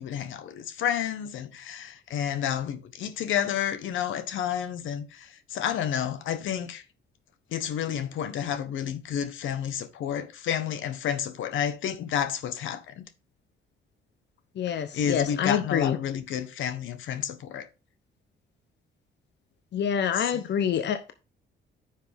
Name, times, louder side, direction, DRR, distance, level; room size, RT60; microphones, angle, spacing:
voice 1, 0.0-6.8 7.5-13.1 14.7-17.7 20.1-20.4, left 9 dB, 80° left, 1.3 m, -30 dB
voice 2, 14.6-16.0 19.7-21.1, left 8 dB, 60° left, 1.0 m, -26 dB
9.6 x 6.0 x 3.6 m
cardioid pair, 90°, 20 cm